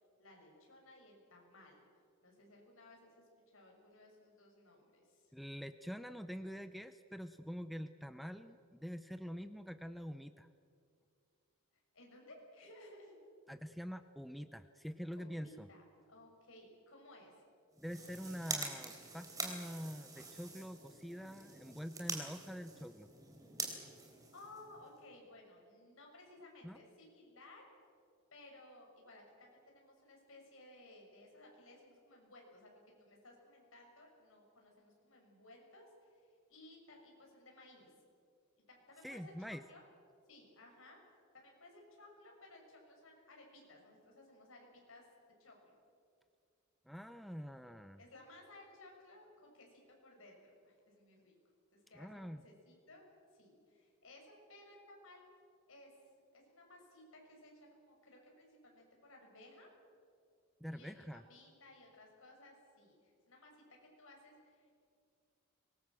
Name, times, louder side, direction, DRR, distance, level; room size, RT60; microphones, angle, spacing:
voice 1, 0.2-1.9 2.2-5.3 11.9-13.2 15.1-17.4 23.9-24.0 24.3-27.6 28.3-37.9 38.7-39.8 40.3-41.0 41.3-45.1 45.4-45.8 48.0-51.3 51.7-53.0 53.3-55.2 55.7-55.9 56.3-59.7 60.7-60.9 61.3-64.8, left 2 dB, 65° left, 0 dB, 6.7 m, -59 dB
voice 2, 5.3-10.5 13.5-15.7 17.8-23.1 26.6-26.8 39.0-39.6 46.9-48.0 52.0-52.4 60.6-61.2, equal, ahead, 10 dB, 0.5 m, -46 dB
sound 1, 17.7-25.0, right 3 dB, 15° right, 3.5 m, -45 dB
24.5 x 21.0 x 7.6 m, 2.3 s
head